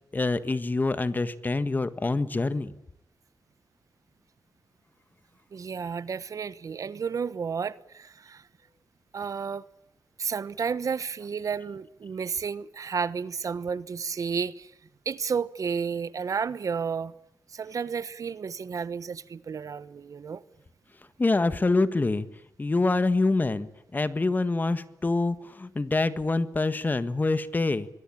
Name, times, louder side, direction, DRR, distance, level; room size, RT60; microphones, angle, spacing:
voice 1, 0.1-2.7 21.2-22.3 22.6-27.9, left 3 dB, 30° left, 1.6 m, -26 dB
voice 2, 5.5-8.4 9.1-9.6 10.2-14.7 15.0-17.1 17.5-20.4, right 6 dB, 65° right, 1.1 m, -32 dB
25.5 x 21.5 x 8.7 m
wide cardioid pair, 100°, 6 cm